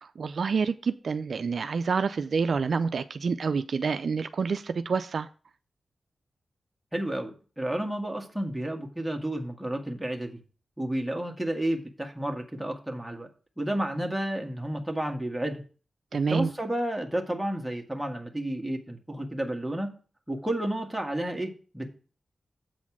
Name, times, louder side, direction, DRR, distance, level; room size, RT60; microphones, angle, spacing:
voice 1, 0.0-5.3 16.1-16.5, right 5 dB, 70° right, 0.4 m, -28 dB
voice 2, 6.9-10.3 10.8-13.3 13.6-15.6 16.1-19.9 20.3-21.9, right 1 dB, 5° right, 1.6 m, -31 dB
8.1 x 4.2 x 6.0 m
cardioid pair, 75°, 0 cm